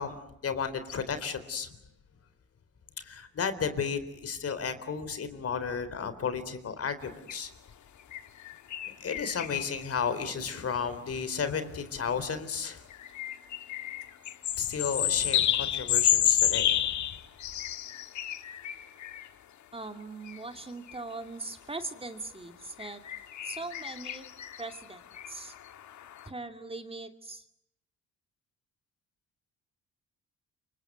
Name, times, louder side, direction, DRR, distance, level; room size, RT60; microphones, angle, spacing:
voice 1, 0.0-1.8 3.0-7.5 9.0-12.9 14.6-16.9, left 6 dB, 50° left, 12 dB, 4.0 m, -33 dB
sound 1, 7.3-7.4 8.1-9.9 10.4-10.5 12.9-19.3 20.3-20.4 20.9-21.0 22.8-26.3, left 11 dB, 70° left, 1.7 m, -30 dB
voice 2, 19.7-23.0 23.4-24.3 24.6-25.0 25.3-25.6 26.3-27.4, right 3 dB, 20° right, 7 dB, 2.6 m, -40 dB
28.5 x 25.5 x 8.1 m, 0.76 s
cardioid pair, 90°, 30 cm